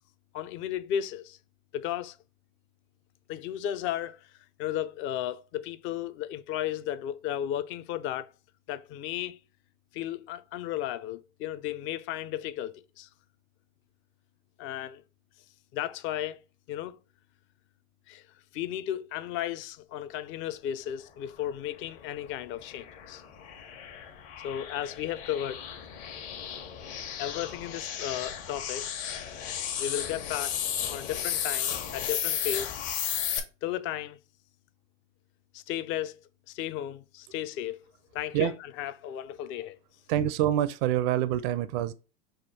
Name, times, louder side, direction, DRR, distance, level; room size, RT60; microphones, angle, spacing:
voice 1, 0.3-1.4 1.7-2.2 3.3-4.2 4.6-8.3 8.7-9.4 9.9-13.1 14.6-15.0 15.7-16.4 16.7-16.9 18.1-18.2 18.5-23.2 24.4-25.6 27.2-28.9 29.8-30.6 30.9-32.8 33.6-34.2 35.5-36.2 36.5-37.8 38.1-38.5 38.8-39.8, left 11 dB, 30° left, 0.4 m, -34 dB
sound 1, 21.8-33.4, left 9 dB, 55° left, 1.2 m, -34 dB
voice 2, 40.1-41.9, right 12 dB, 45° right, 0.5 m, -26 dB
4.9 x 2.2 x 4.3 m
hypercardioid pair, 105°, 40 cm